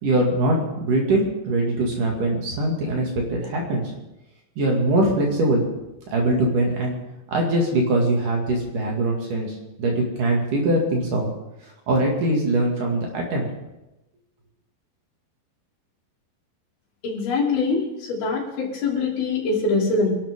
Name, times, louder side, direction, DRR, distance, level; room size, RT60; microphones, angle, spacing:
voice 1, 0.0-3.9 4.6-5.6 6.1-7.0 7.3-11.3 11.9-13.5, right 1 dB, 55° right, 0 dB, 3.6 m, -22 dB
voice 2, 17.0-17.8 18.1-20.2, left 3 dB, 70° left, -4 dB, 5.0 m, -23 dB
26.0 x 12.0 x 3.7 m, 0.95 s
omnidirectional pair, 4.7 m